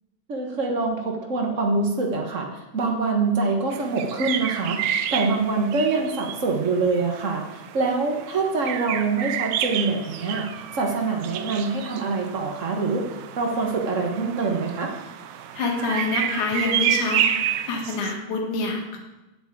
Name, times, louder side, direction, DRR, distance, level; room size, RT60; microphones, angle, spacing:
voice 1, 0.3-10.5 10.7-13.1 13.4-14.9, right 3 dB, 55° right, 2 dB, 0.8 m, -25 dB
sound 1, 3.7-18.1, right 10 dB, 85° right, 2.1 m, -30 dB
voice 2, 15.5-17.2 17.7-19.0, left 3 dB, 80° left, 1 dB, 3.1 m, -26 dB
8.3 x 7.2 x 8.5 m, 1.1 s
omnidirectional pair, 3.3 m